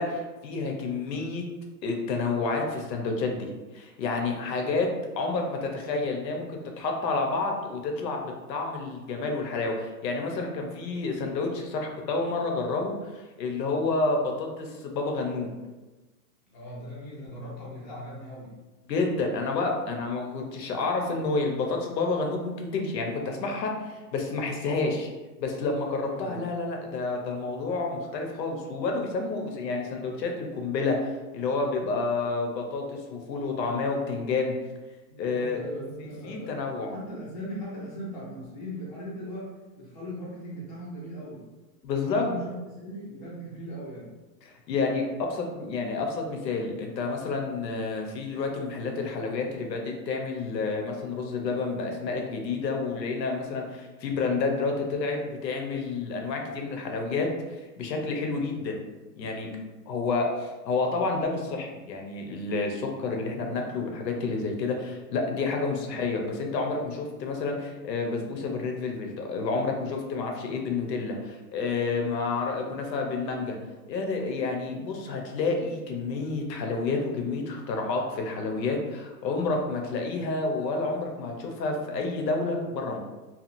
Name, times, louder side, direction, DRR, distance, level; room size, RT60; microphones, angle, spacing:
voice 1, 0.0-1.4 1.8-3.5 3.7-4.9 5.2-15.5 18.9-25.1 25.4-34.6 35.2-35.6 36.2-36.9 41.8-42.3 44.4-58.8 59.2-59.5 59.9-73.6 73.9-83.0, left 3 dB, 90° left, 2 dB, 0.8 m, -29 dB
voice 2, 16.5-18.5 26.1-26.5 35.1-36.6 36.9-41.4 42.0-44.1 65.7-65.9 72.4-72.8, equal, 30° left, -6 dB, 0.4 m, -39 dB
2.8 x 2.4 x 2.5 m, 1.2 s
hypercardioid pair, 175°, 49 cm